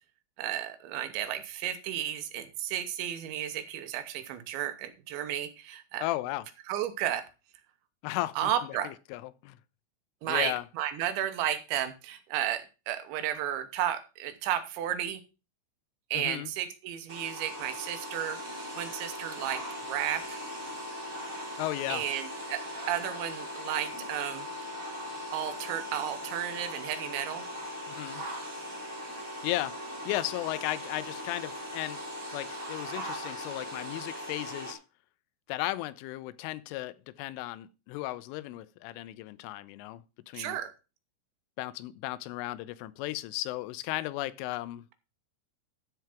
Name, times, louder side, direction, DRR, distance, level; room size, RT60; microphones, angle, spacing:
voice 1, 0.4-6.1 6.7-7.3 8.4-8.9 10.2-15.2 16.1-19.6 19.9-20.4 21.9-24.5 25.3-27.4 40.3-40.7, right 11 dB, 80° right, 3.2 m, -33 dB
voice 2, 6.0-6.5 8.0-9.6 10.3-10.6 16.1-16.5 21.6-22.0 27.9-28.2 29.4-32.0 32.3-34.8 35.5-40.6 41.6-44.8, left 17 dB, 90° left, 3.2 m, -35 dB
sound 1, 17.1-34.7, left 1 dB, 25° right, 2.0 m, -39 dB
12.5 x 4.7 x 5.8 m
omnidirectional pair, 5.5 m